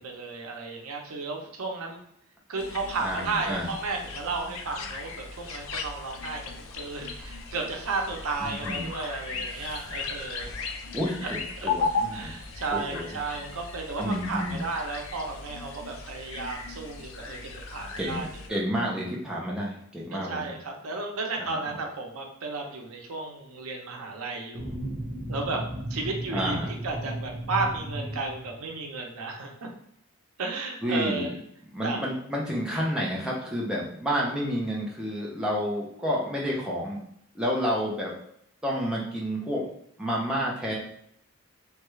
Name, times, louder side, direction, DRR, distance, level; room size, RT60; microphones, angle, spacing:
voice 1, 0.0-2.0 2.5-10.5 11.2-11.7 12.1-18.6 20.1-24.7 25.3-25.6 25.9-29.7 30.4-31.3 31.8-32.0, right 3 dB, 85° right, 2 dB, 0.6 m, -33 dB
sound 1, 2.6-18.5, left 4 dB, 75° left, 0.4 m, -36 dB
voice 2, 3.0-3.7 8.4-8.9 9.5-9.9 10.9-11.1 11.6-12.3 12.7-13.2 14.0-14.6 18.0-20.5 21.4-21.6 26.3-26.7 30.8-31.3 31.7-37.0 37.3-38.2 38.6-39.6 40.0-40.8, equal, 5° right, -4 dB, 0.5 m, -30 dB
sound 2, 24.5-28.8, right 1 dB, 40° right, 0.7 m, -35 dB
3.2 x 2.3 x 3.0 m, 0.71 s
head